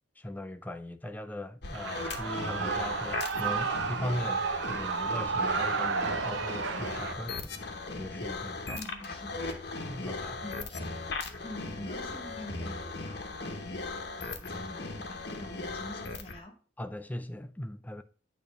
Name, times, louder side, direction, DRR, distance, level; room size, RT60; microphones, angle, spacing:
voice 1, 0.2-8.9 9.9-10.4 16.8-18.0, left 1 dB, 10° left, 0.4 m, -39 dB
sound 1, 1.6-16.4, left 3 dB, 60° left, 0.9 m, -38 dB
Shout / Cheering, 1.7-7.1, right 5 dB, 85° right, 0.6 m, -32 dB
voice 2, 8.7-9.5 10.4-10.9 11.4-16.6, left 1 dB, 30° left, 1.3 m, -46 dB
8.9 x 3.1 x 5.2 m
head